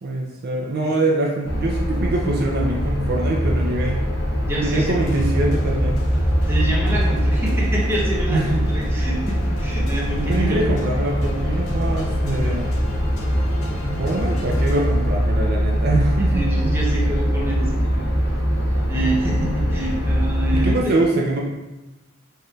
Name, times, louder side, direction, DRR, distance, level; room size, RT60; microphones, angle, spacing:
voice 1, 0.0-4.0 4.6-6.0 8.3-8.7 10.2-12.8 14.0-16.5 20.5-21.4, right 2 dB, 50° right, -1 dB, 0.4 m, -24 dB
sound 1, 1.4-20.8, equal, 50° left, 0.8 m, -22 dB
voice 2, 4.5-4.9 6.5-10.6 16.2-18.4 18.8-20.9, right 1 dB, 10° right, -4 dB, 0.7 m, -27 dB
sound 2, 5.1-15.7, right 1 dB, 85° left, 0.7 m, -37 dB
4.5 x 3.1 x 2.3 m, 1.1 s
head